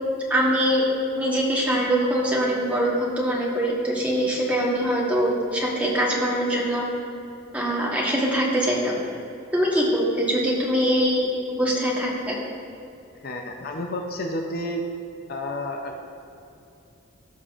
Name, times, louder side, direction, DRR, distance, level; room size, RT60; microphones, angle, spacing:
voice 1, 0.3-0.8 1.1-6.8 7.5-9.0 9.5-11.3 11.6-12.4, equal, 5° right, -5 dB, 1.2 m, -23 dB
voice 2, 13.2-14.8 15.3-16.0, left 1 dB, 45° left, 2 dB, 0.5 m, -30 dB
16.0 x 5.7 x 2.5 m, 2.8 s
head